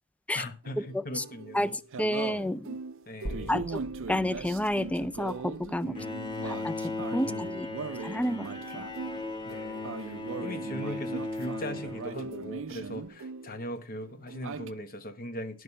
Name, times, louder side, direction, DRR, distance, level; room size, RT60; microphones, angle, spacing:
voice 1, 0.3-1.8 2.4-2.6 3.1-3.6 5.8-6.5 7.1-7.9 9.4-15.6, left 1 dB, 45° left, 1.2 m, -40 dB
sound 1, 0.6-13.8 14.0-14.7, right 4 dB, 65° right, 0.5 m, -40 dB
voice 2, 1.5-2.8 3.5-3.8 4.1-5.9 6.4-6.7 7.1-7.7 8.0-8.5 8.7-8.8, left 1 dB, 5° left, 0.4 m, -30 dB
sound 2, 3.2-7.5, right 1 dB, 65° left, 1.5 m, -45 dB
Bowed string instrument, 5.9-12.7, left 2 dB, 20° left, 1.5 m, -37 dB
11.0 x 6.5 x 5.3 m
head